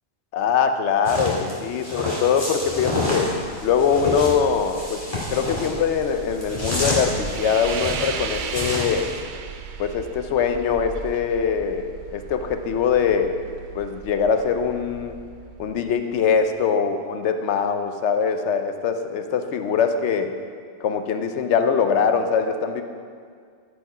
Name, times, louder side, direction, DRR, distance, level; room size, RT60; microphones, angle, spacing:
voice 1, 0.3-3.3 3.6-5.0 5.3-9.1 9.8-13.4 13.7-15.2 15.6-20.3 20.8-22.8, left 6 dB, 80° left, 7 dB, 1.0 m, -22 dB
sound 1, 1.0-9.1, left 2 dB, 30° left, 2.4 m, -29 dB
sound 2, 2.6-16.6, right 6 dB, 55° right, 0.6 m, -37 dB
13.0 x 5.0 x 4.9 m, 2.1 s
omnidirectional pair, 1.2 m